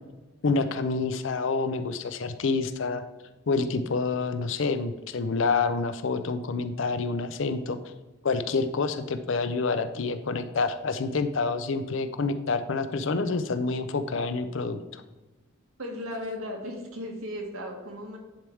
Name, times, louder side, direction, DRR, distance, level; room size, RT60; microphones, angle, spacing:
voice 1, 0.4-3.0 3.5-7.8 8.2-15.0, left 4 dB, 65° left, 10 dB, 0.5 m, -28 dB
voice 2, 15.8-18.2, left 1 dB, 85° right, 1 dB, 1.6 m, -36 dB
10.5 x 3.5 x 4.5 m, 1.1 s
head